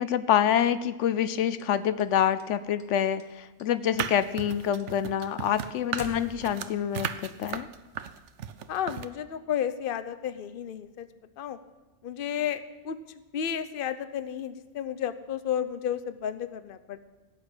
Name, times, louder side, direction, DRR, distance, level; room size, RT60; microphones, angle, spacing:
voice 1, 0.0-7.7, left 9 dB, 85° left, 14 dB, 1.0 m, -26 dB
sound 1, 1.6-2.8 3.2-3.7 4.0-6.8, left 2 dB, 35° left, 1.4 m, -45 dB
sound 2, 3.9-9.1, right 8 dB, 80° right, 1.0 m, -35 dB
voice 2, 8.7-11.1 11.4-11.6 12.0-13.0 13.3-17.0, left 9 dB, 55° left, 12 dB, 0.9 m, -32 dB
17.0 x 6.7 x 8.8 m, 1.2 s
omnidirectional pair, 1.2 m